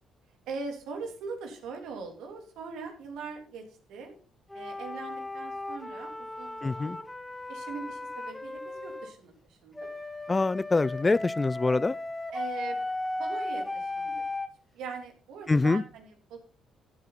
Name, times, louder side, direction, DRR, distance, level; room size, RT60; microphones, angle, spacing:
voice 1, 0.5-4.1 4.5-6.9 7.5-9.3 9.6-9.9 12.3-12.8 13.2-14.1 14.7-16.4, right 5 dB, 75° right, 3.2 m, -41 dB
sound 1, 4.5-9.1 9.8-14.5, left 2 dB, 10° left, 1.8 m, -36 dB
voice 2, 6.6-7.0 10.3-11.9 15.5-15.8, left 3 dB, 25° left, 0.5 m, -25 dB
15.0 x 8.5 x 4.2 m
hypercardioid pair, 55°, 0 cm